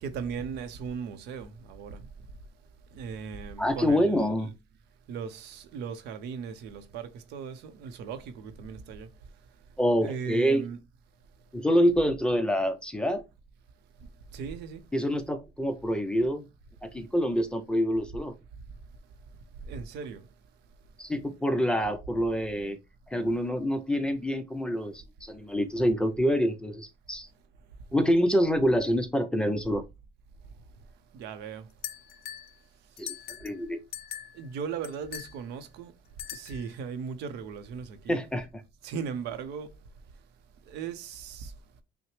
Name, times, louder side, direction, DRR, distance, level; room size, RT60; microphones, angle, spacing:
voice 1, 0.0-2.0 2.9-4.3 5.1-9.1 10.0-10.8 14.3-14.8 19.6-20.3 31.1-31.7 34.3-35.9 36.3-38.2 38.8-39.7 40.7-41.5, right 6 dB, 85° right, 0.7 m, -37 dB
voice 2, 3.6-4.5 9.8-10.6 11.5-13.2 14.9-16.4 16.8-18.3 21.0-22.8 23.1-27.3 27.9-29.8 33.0-33.1 33.4-33.8 38.1-38.6, equal, 5° left, 0.6 m, -26 dB
sound 1, 31.8-32.5 33.0-33.6 33.9-34.4 34.8-35.3 36.2-36.7, left 10 dB, 65° left, 0.5 m, -40 dB
5.7 x 2.1 x 3.2 m
cardioid pair, 110°, 17 cm